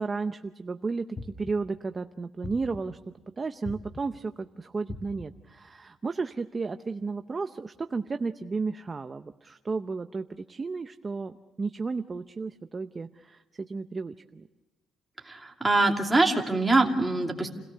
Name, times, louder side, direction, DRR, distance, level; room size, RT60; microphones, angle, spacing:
voice 1, 0.0-3.0 3.4-14.5, right 4 dB, 25° right, 8 dB, 0.7 m, -33 dB
sound 1, 1.2-1.8 2.4-3.1 3.7-4.3 4.9-5.5, left 2 dB, 30° left, 3.7 m, -42 dB
voice 2, 15.2-17.5, right 2 dB, 10° right, 0 dB, 2.7 m, -24 dB
29.5 x 17.5 x 6.8 m, 1.1 s
cardioid pair, 135°, 0 cm